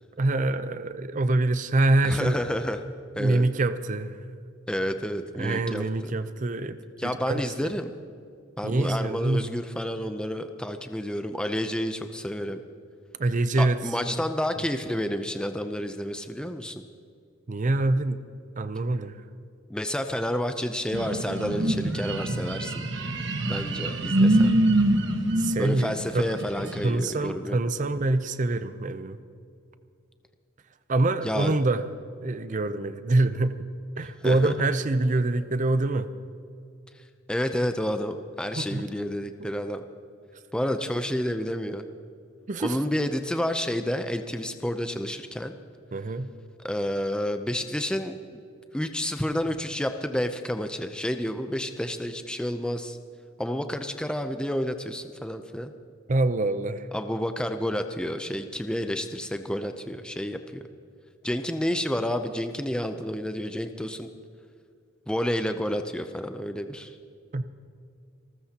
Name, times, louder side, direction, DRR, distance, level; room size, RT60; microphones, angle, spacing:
voice 1, 0.2-2.4 3.2-4.2 5.4-7.7 8.6-9.5 13.2-13.8 14.1-14.2 17.5-18.2 18.6-19.2 23.7-24.1 25.4-26.3 26.8-29.2 30.9-31.8 32.2-33.6 34.0-36.1 38.6-38.9 40.3-40.4 42.5-42.8 45.9-46.3 56.1-56.9 67.3-67.4, right 2 dB, 40° right, 12 dB, 0.5 m, -25 dB
voice 2, 2.0-2.8 3.2-3.5 4.7-6.1 7.0-7.9 8.6-12.6 13.6-16.8 19.7-22.8 23.5-24.5 25.6-27.6 31.2-31.5 34.2-34.5 37.3-39.8 40.5-41.8 42.6-45.5 46.6-48.2 48.7-53.0 53.4-55.7 56.9-60.7 61.2-64.1 65.1-67.0, equal, 5° left, 7 dB, 0.5 m, -30 dB
sound 1, 20.9-26.9, right 1 dB, 60° right, 1.3 m, -25 dB
28.0 x 14.0 x 2.9 m, 2.4 s
head